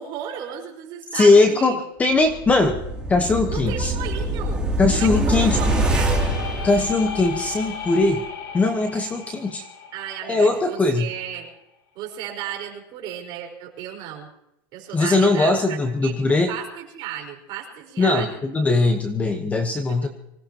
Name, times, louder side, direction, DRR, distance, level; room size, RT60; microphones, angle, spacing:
voice 1, 0.0-1.8 3.5-4.6 4.9-6.3 9.9-11.5 11.9-14.3 14.7-18.4 19.7-20.0, right 10 dB, 40° right, 1 dB, 4.7 m, -35 dB
voice 2, 1.1-2.8 3.1-3.9 4.8-5.6 6.6-8.2 8.5-9.6 10.3-11.1 14.9-16.5 18.0-20.1, left 3 dB, 10° left, 6 dB, 1.1 m, -20 dB
sound 1, 2.3-7.5 7.8-7.9, right 1 dB, 5° right, 2.8 m, -24 dB
sound 2, 5.2-11.1, left 6 dB, 80° left, 1.8 m, -36 dB
25.0 x 17.5 x 2.9 m, 0.84 s
supercardioid pair, 160°, 11 cm